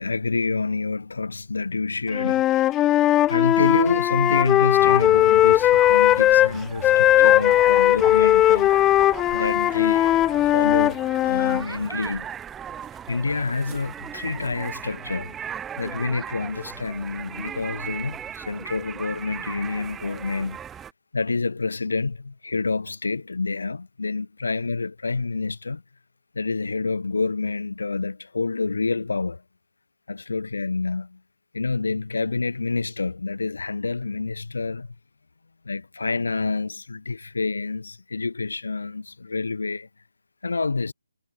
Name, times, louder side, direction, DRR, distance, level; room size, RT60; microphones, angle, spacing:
voice 1, 0.0-2.7 3.3-8.7 9.3-12.3 13.1-15.4 15.8-20.6 21.1-25.8 26.3-29.4 30.1-31.2 31.5-34.9 35.7-39.9 40.4-40.9, left 3 dB, 80° left, 3.6 m, -28 dB
Wind instrument woodwind instrument, 2.1-6.5 6.8-11.6, left 13 dB, 10° left, 0.4 m, -18 dB
sound 1, 4.8-20.9, right 9 dB, 10° right, 6.4 m, -37 dB
hypercardioid pair, 165°, 0 cm